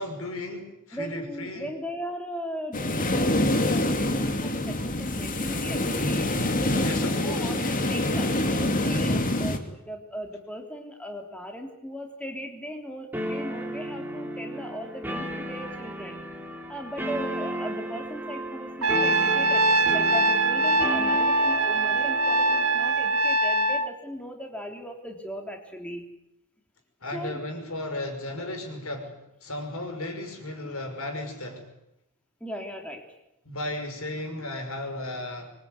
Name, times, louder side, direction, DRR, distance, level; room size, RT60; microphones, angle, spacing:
voice 1, 0.0-1.7 6.8-7.6 27.0-31.7 33.5-35.5, left 1 dB, 70° left, 5 dB, 6.0 m, -35 dB
voice 2, 0.9-16.2 16.7-26.1 27.1-27.4 32.4-33.1, equal, 5° left, 3 dB, 3.2 m, -38 dB
sound 1, 2.7-9.6, left 1 dB, 40° left, 2.7 m, -25 dB
sound 2, 13.1-23.2, equal, 10° right, 3.4 m, -34 dB
Trumpet, 18.8-23.9, right 2 dB, 75° right, 1.6 m, -22 dB
25.5 x 22.5 x 9.6 m, 0.84 s
head